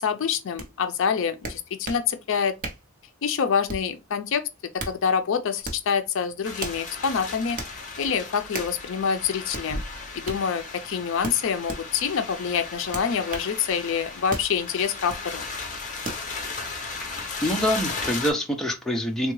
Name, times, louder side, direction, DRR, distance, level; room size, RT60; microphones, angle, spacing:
voice 1, 0.0-2.5 3.2-4.4 4.7-7.6 8.0-9.8 10.1-15.4, left 6 dB, 60° left, 0.4 m, -26 dB
sound 1, 0.6-0.7 1.4-2.1 2.6-2.9 3.7-4.0 4.6-5.0 5.6-5.9 6.6-6.8 7.6-7.8 8.5-8.8 9.5-9.7 10.2-10.4 11.2-11.8 12.9-13.5 14.3-14.5 15.1-15.3 16.0-16.2, right 2 dB, 40° right, 0.7 m, -35 dB
sound 2, 6.4-18.3, left 4 dB, 35° left, 0.7 m, -35 dB
voice 2, 17.0-19.3, equal, ahead, 0.5 m, -26 dB
3.5 x 2.2 x 3.0 m
head